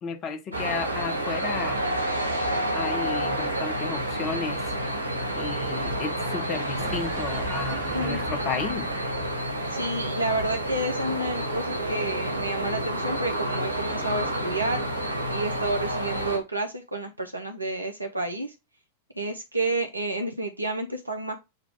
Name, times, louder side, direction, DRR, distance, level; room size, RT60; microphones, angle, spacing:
voice 1, 0.0-1.8 2.7-4.7 5.3-8.9, left 5 dB, 30° left, 0.8 m, -33 dB
sound 1, 0.5-16.4, right 1 dB, 90° left, 1.1 m, -29 dB
sound 2, 6.8-11.6, right 3 dB, 40° right, 1.0 m, -41 dB
voice 2, 9.7-14.8 15.3-18.5 19.2-21.3, right 2 dB, 85° right, 0.5 m, -30 dB
6.6 x 2.3 x 3.5 m
figure-of-eight pair, 90°, 0 cm